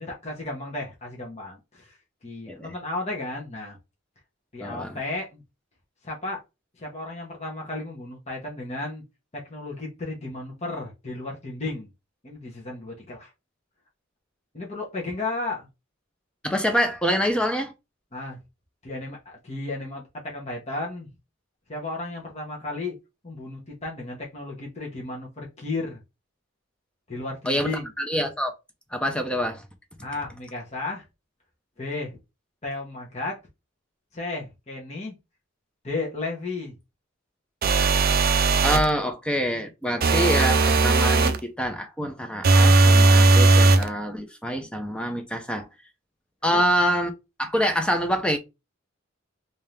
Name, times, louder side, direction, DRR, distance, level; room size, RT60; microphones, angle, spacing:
voice 1, 0.0-2.0 2.2-3.8 4.5-5.4 6.0-6.4 6.8-9.0 9.3-11.9 12.2-13.3 14.5-15.7 18.1-18.4 18.8-21.1 21.7-22.9 23.2-26.0 27.1-27.9 30.0-31.0 31.8-32.2 32.6-33.4 34.1-35.1 35.8-36.7 46.5-46.6, left 2 dB, 35° left, 1.1 m, -34 dB
voice 2, 4.6-5.0 16.4-17.7 27.5-28.5 28.9-29.6 38.6-45.7 46.4-47.1 47.4-48.4, equal, 5° left, 0.6 m, -26 dB
sound 1, 37.6-38.9 40.0-41.4 42.4-43.9, right 3 dB, 45° right, 0.5 m, -17 dB
3.5 x 2.8 x 3.2 m
head